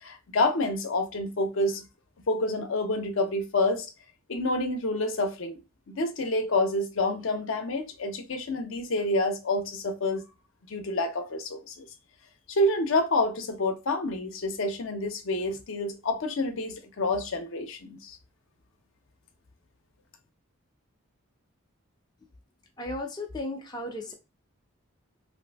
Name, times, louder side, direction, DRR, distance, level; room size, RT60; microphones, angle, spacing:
voice 1, 0.0-1.9 2.3-3.9 4.3-10.2 10.7-11.9 12.5-18.2, left 2 dB, 65° left, 0.6 m, -28 dB
voice 2, 22.8-24.1, left 1 dB, 20° left, 0.4 m, -35 dB
2.6 x 2.5 x 3.4 m
head